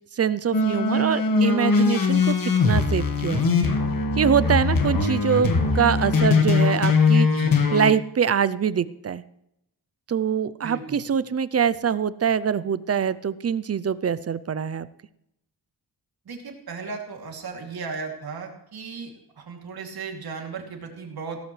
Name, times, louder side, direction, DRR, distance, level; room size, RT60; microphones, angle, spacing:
voice 1, 0.1-3.4 4.2-7.3 7.7-9.2 10.1-14.9, right 7 dB, 35° right, 16 dB, 0.5 m, -24 dB
sound 1, 0.5-7.9, left 4 dB, 55° left, 1.7 m, -21 dB
voice 2, 10.6-11.0 16.2-19.1 19.4-21.4, right 5 dB, 60° right, 1 dB, 2.9 m, -36 dB
16.5 x 14.0 x 3.3 m, 0.81 s
wide cardioid pair, 150°, 41 cm